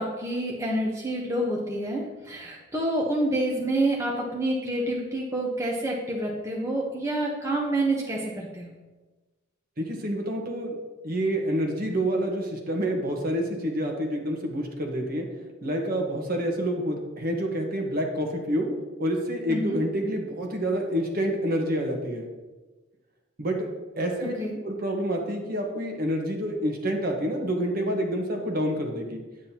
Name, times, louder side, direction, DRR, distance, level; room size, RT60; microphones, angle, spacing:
voice 1, 0.0-8.7 19.5-19.8 24.4-24.6, right 1 dB, 15° right, -3 dB, 0.9 m, -28 dB
voice 2, 9.8-10.8 11.0-15.3 15.6-18.7 19.0-22.3 23.4-23.7 24.0-24.3 24.6-29.2, equal, 45° right, 1 dB, 1.2 m, -28 dB
8.9 x 8.7 x 2.9 m, 1.2 s
head